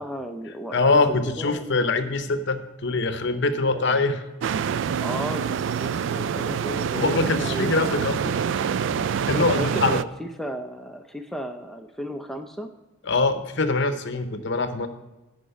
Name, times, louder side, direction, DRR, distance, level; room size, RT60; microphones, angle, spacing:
voice 1, 0.0-1.7 3.5-4.0 5.0-7.7 9.4-12.7, equal, ahead, 5 dB, 0.5 m, -34 dB
voice 2, 0.7-4.2 6.9-8.4 9.3-10.0 13.1-14.9, left 3 dB, 55° left, 9 dB, 0.8 m, -23 dB
sound 1, 4.4-10.0, right 7 dB, 60° right, 0.3 m, -26 dB
10.0 x 5.1 x 6.8 m, 1.1 s
head